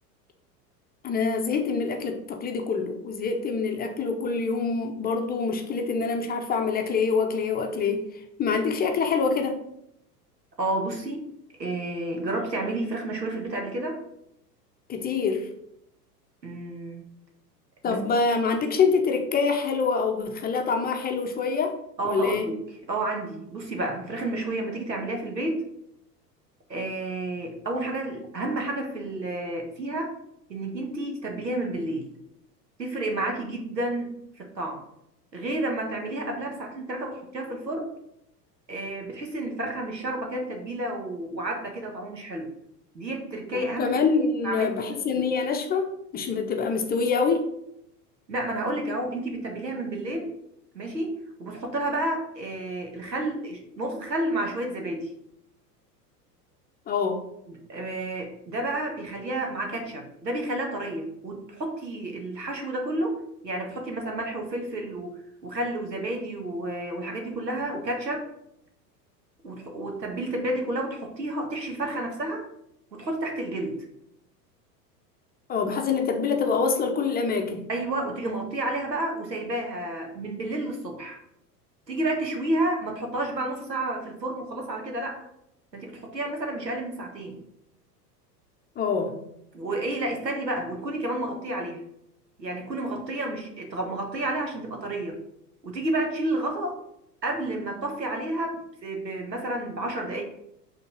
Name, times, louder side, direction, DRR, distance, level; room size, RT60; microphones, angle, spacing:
voice 1, 1.0-8.0 8.4-9.6 14.9-15.5 17.8-21.8 22.0-22.5 43.5-47.5 56.9-57.2 75.5-77.6 88.8-89.2, left 5 dB, 20° left, 4 dB, 0.7 m, -25 dB
voice 2, 10.6-11.3 11.6-14.0 16.4-17.0 17.8-18.0 22.0-22.6 22.9-25.7 26.7-30.1 30.5-32.1 32.8-34.8 35.3-37.9 38.7-42.5 42.9-44.7 45.1-45.2 48.3-50.3 50.7-55.1 57.5-68.2 69.4-72.5 72.9-73.8 77.7-81.2 81.9-85.2 85.7-87.4 89.5-91.8 92.4-95.2 95.6-96.8 97.2-100.2, right 1 dB, 85° right, 2 dB, 1.4 m, -31 dB
5.3 x 3.6 x 5.8 m, 0.79 s
figure-of-eight pair, 85°, 49 cm